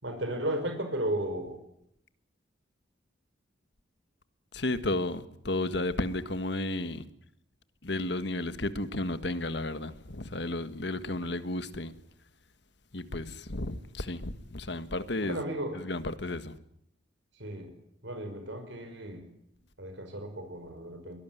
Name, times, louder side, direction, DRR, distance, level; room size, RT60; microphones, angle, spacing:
voice 1, 0.0-1.6 15.2-15.8 17.4-17.7 18.0-19.2 19.8-21.2, right 1 dB, 70° right, 5.3 m, -34 dB
voice 2, 4.5-7.1 7.8-11.9 12.9-15.4 15.8-16.6, left 2 dB, 65° left, 1.6 m, -33 dB
23.5 x 19.0 x 9.3 m
head